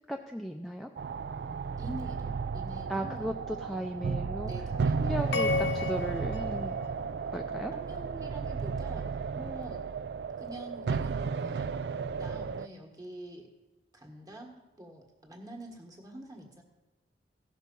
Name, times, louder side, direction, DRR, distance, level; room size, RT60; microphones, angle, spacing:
voice 1, 0.1-0.9 2.9-4.7 5.0-6.8 7.3-7.7, equal, ahead, 2 dB, 0.4 m, -36 dB
sound 1, 1.0-12.7, right 5 dB, 65° right, 0.3 m, -33 dB
voice 2, 1.8-3.3 4.4-5.4 7.7-9.8 10.4-11.8 12.2-13.5 13.9-16.6, right 1 dB, 20° right, 1 dB, 1.6 m, -46 dB
sound 2, 5.3-7.7, left 5 dB, 70° left, 0.7 m, -34 dB
16.0 x 6.4 x 5.4 m, 1.1 s
head